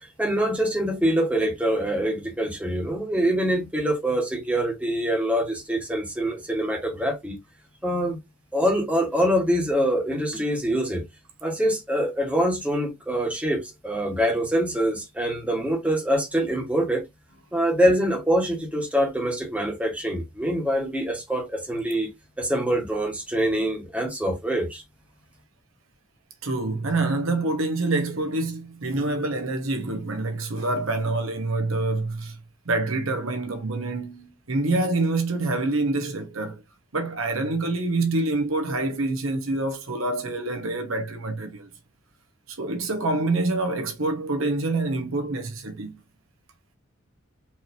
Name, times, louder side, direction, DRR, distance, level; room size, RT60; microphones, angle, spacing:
voice 1, 0.2-7.3 7.8-8.2 8.5-11.1 11.4-17.0 17.5-22.1 22.4-24.8, equal, 5° right, 1.4 m, -24 dB
voice 2, 26.4-32.4 32.6-36.6 36.9-41.7 42.5-46.0, right 2 dB, 70° right, 1.0 m, -26 dB
4.6 x 3.0 x 2.7 m
head